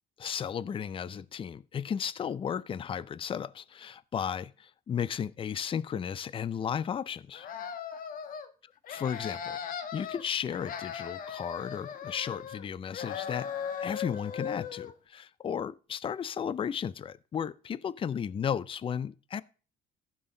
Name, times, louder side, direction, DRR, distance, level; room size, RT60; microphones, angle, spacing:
voice 1, 0.2-7.5 8.9-9.6 9.9-13.5 13.8-19.4, left 8 dB, 30° left, 0.5 m, -34 dB
sound 1, 7.3-8.5 8.8-10.2 10.5-12.7 12.9-14.9, left 8 dB, 55° left, 1.3 m, -38 dB
15.0 x 6.2 x 3.9 m
cardioid pair, 110°, 17 cm